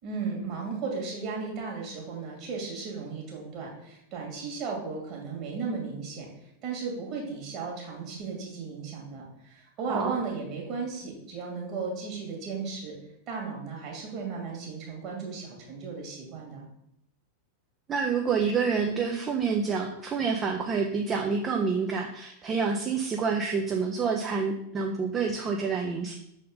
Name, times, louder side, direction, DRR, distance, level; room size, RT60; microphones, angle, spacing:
voice 1, 0.0-6.3 6.6-12.9 13.3-16.6, right 4 dB, 40° right, -1 dB, 2.2 m, -35 dB
voice 2, 17.9-26.1, right 5 dB, 25° right, 2 dB, 0.6 m, -28 dB
6.5 x 4.2 x 3.8 m, 0.76 s
figure-of-eight pair, 90°, 0 cm